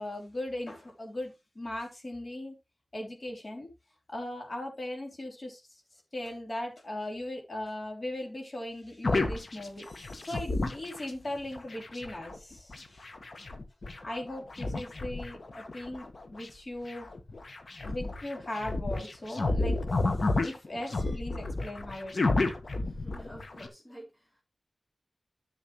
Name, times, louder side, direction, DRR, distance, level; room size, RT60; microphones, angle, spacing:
voice 1, 0.0-2.5 2.9-3.7 4.1-5.8 6.1-13.1 14.0-17.1 17.8-19.8 20.4-22.5, left 1 dB, 45° left, 2 dB, 3.3 m, -38 dB
sound 1, 9.0-11.1 11.6-16.5 16.9-23.7, left 2 dB, 65° left, 1.3 m, -32 dB
voice 2, 22.8-24.4, equal, 30° left, -6 dB, 3.7 m, -50 dB
10.5 x 7.2 x 3.0 m, 0.24 s
wide cardioid pair, 55°, 0 cm